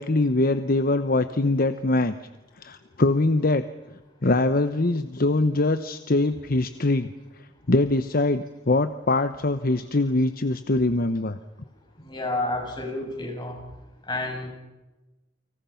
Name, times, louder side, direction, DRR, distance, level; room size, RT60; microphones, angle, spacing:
voice 1, 0.0-2.1 2.6-3.6 4.2-7.1 7.7-11.4, left 2 dB, 50° left, 11 dB, 1.0 m, -23 dB
voice 2, 12.0-13.5 14.1-14.5, left 2 dB, 25° left, 1 dB, 7.6 m, -30 dB
30.0 x 25.5 x 5.8 m, 1.1 s
head